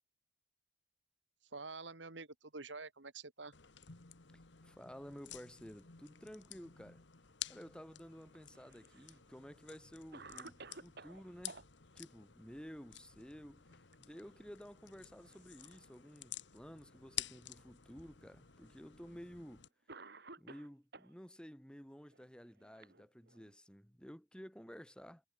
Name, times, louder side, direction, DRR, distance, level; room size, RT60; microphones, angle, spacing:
voice 1, 1.5-3.5, right 3 dB, 80° right, 2.3 m, -48 dB
sound 1, 3.5-19.7, left 12 dB, 75° left, 1.6 m, -51 dB
voice 2, 4.6-7.0 7.5-11.6 11.9-13.6 14.0-19.7 20.4-25.2, equal, 5° left, 4.5 m, -53 dB
Cough, 8.3-9.2 9.7-9.8 10.1-11.6 13.5-13.9 14.3-14.4 15.2-15.9 16.7-16.8 17.8-17.9 19.1-19.2 19.9-21.1 22.1-23.5, right 3 dB, 65° right, 4.4 m, -55 dB
head